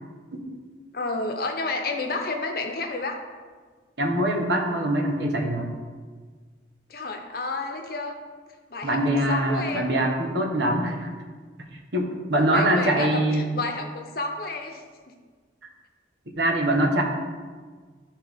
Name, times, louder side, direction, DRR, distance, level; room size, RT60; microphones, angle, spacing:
voice 1, 0.9-3.2 6.9-8.2 8.7-9.0 9.3-9.9 12.5-15.1, left 3 dB, 50° left, 3 dB, 0.8 m, -30 dB
voice 2, 4.0-5.7 8.8-11.1 11.9-13.4 16.4-17.0, right 1 dB, 70° right, 1 dB, 1.2 m, -23 dB
12.0 x 4.5 x 3.6 m, 1.5 s
head